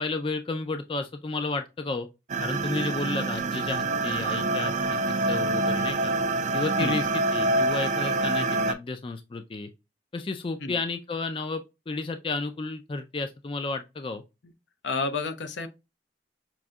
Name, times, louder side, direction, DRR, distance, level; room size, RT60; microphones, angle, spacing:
voice 1, 0.0-2.1 2.4-5.0 5.3-6.1 6.5-9.7 10.1-14.2, left 3 dB, 30° left, 0.3 m, -32 dB
sound 1, 2.3-8.7, right 2 dB, 40° right, 0.4 m, -26 dB
voice 2, 14.8-15.7, left 3 dB, 80° left, 0.7 m, -30 dB
5.9 x 2.6 x 2.2 m
head